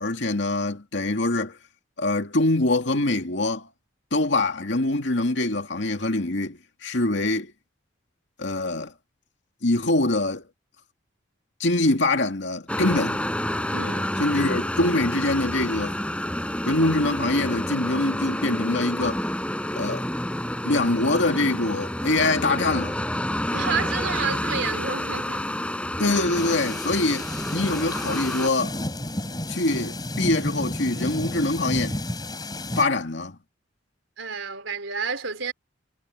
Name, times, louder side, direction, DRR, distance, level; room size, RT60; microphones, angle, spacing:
voice 1, 0.0-1.6 2.0-3.7 4.1-7.5 8.4-8.9 9.6-10.4 11.6-13.2 14.2-16.0 16.7-19.2 19.8-20.0 20.6-23.0 26.0-28.8 29.5-32.0 32.8-33.4, left 2 dB, 65° left, 2.3 m, -24 dB
sound 1, 12.7-28.5, left 1 dB, 5° left, 6.7 m, -29 dB
voice 2, 13.7-14.2 23.5-25.5 34.2-35.5, right 5 dB, 85° right, 3.6 m, -30 dB
sound 2, 26.3-32.8, left 1 dB, 20° left, 4.1 m, -31 dB
head